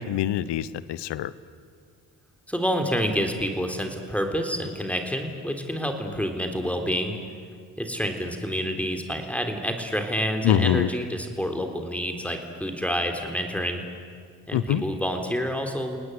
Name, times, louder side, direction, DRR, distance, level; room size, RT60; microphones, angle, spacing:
voice 1, 0.0-1.3 10.4-10.9 14.5-14.8, left 11 dB, 65° left, 18 dB, 1.0 m, -24 dB
voice 2, 2.5-7.2 7.8-13.8 14.5-16.0, equal, 5° left, 4 dB, 3.7 m, -28 dB
30.0 x 19.0 x 8.1 m, 2.1 s
hypercardioid pair, 45°, 45 cm